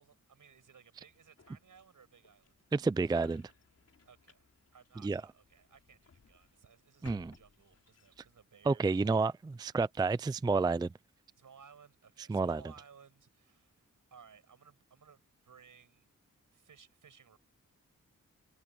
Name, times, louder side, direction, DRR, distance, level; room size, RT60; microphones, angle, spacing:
voice 1, 0.0-2.5 4.1-9.3 11.4-16.1 16.5-17.4, right 6 dB, 80° right, 7.6 m, -60 dB
sound 1, 0.9-8.4, left 5 dB, 50° left, 4.1 m, -61 dB
voice 2, 2.7-3.5 5.0-5.2 7.0-7.3 8.7-10.9 12.3-12.6, right 4 dB, 15° right, 0.3 m, -30 dB
wide cardioid pair, 120°, 31 cm